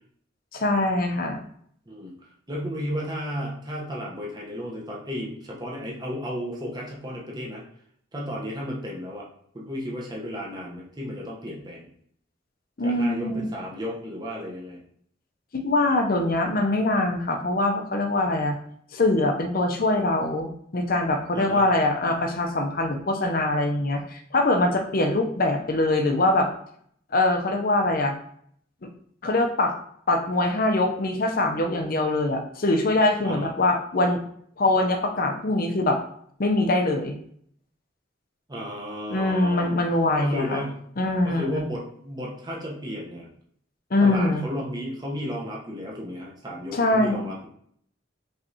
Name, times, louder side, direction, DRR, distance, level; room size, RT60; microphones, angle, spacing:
voice 1, 0.5-1.4 12.8-13.5 15.5-18.6 18.9-26.5 27.1-28.1 29.2-29.7 30.1-34.2 34.6-36.0 36.4-37.2 39.1-40.6 41.0-41.6 43.9-44.5 46.7-47.3, left 2 dB, 50° left, 4 dB, 0.6 m, -23 dB
voice 2, 2.5-7.6 8.1-9.3 9.5-11.9 12.8-14.8 21.3-21.6 33.2-33.5 38.5-39.7 40.2-40.7 41.2-43.3 44.0-47.5, equal, 20° right, -3 dB, 0.9 m, -33 dB
5.4 x 3.2 x 2.8 m, 0.65 s
head